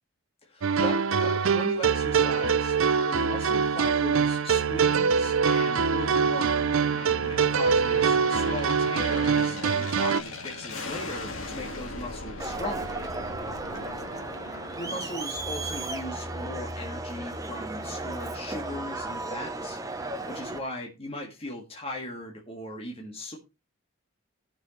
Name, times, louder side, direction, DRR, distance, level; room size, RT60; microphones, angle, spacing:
voice 1, 0.4-6.7 7.2-13.0 14.8-23.4, left 1 dB, 25° left, -1 dB, 1.8 m, -38 dB
sound 1, 0.6-10.2, right 6 dB, 65° right, 0.5 m, -24 dB
Aircraft, 3.0-15.7, left 2 dB, 70° left, 1.9 m, -40 dB
Crowd, 12.4-20.6, right 2 dB, 15° right, 0.8 m, -35 dB
15.5 x 6.3 x 3.2 m, 0.26 s
head